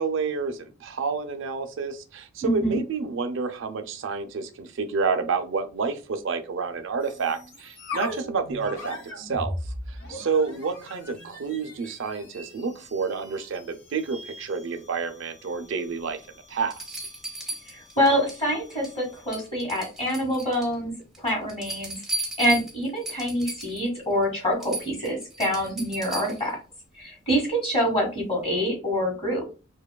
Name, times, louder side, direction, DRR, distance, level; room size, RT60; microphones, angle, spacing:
voice 1, 0.0-9.6 9.9-16.2 16.5-17.0, right 5 dB, 60° right, 0.4 m, -29 dB
voice 2, 2.4-2.8 17.7-26.5 27.0-29.4, equal, 30° left, 1.1 m, -26 dB
sound 1, 7.0-19.5, left 1 dB, 75° left, 1.0 m, -40 dB
sound 2, 16.0-16.1 16.7-18.4 18.7-19.0 19.3-20.7 21.1-23.9 24.2-24.3 24.6-26.5 28.2-28.3, right 2 dB, ahead, 0.5 m, -36 dB
2.5 x 2.2 x 2.2 m
head